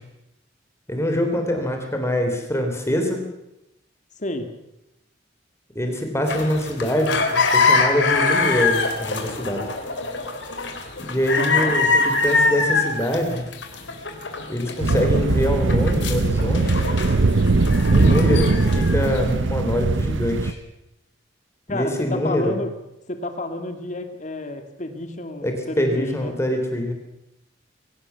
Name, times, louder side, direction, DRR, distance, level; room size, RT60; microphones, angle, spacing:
voice 1, 0.9-3.2 5.8-7.2 7.5-9.7 11.1-13.4 14.5-16.9 17.9-20.6 21.7-22.6 25.4-26.9, equal, 15° left, 4 dB, 3.6 m, -24 dB
voice 2, 4.2-4.5 11.4-11.8 21.7-22.7 23.1-26.4, left 2 dB, 40° left, 7 dB, 2.3 m, -30 dB
sound 1, 6.3-19.3, left 4 dB, 70° left, 3.5 m, -23 dB
sound 2, 14.8-20.5, right 3 dB, 80° right, 0.8 m, -20 dB
23.0 x 17.5 x 7.0 m, 0.86 s
head